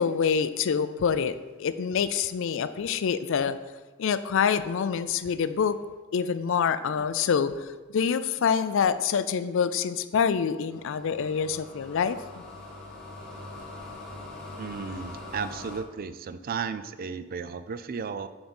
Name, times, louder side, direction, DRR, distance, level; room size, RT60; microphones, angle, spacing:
voice 1, 0.0-3.6 4.0-5.8 6.1-12.4, left 6 dB, 65° left, 13 dB, 0.4 m, -26 dB
sound 1, 10.7-15.8, left 2 dB, 5° left, 1.2 m, -42 dB
voice 2, 14.6-18.3, right 5 dB, 45° right, 12 dB, 0.4 m, -34 dB
7.1 x 3.8 x 5.3 m, 1.2 s
head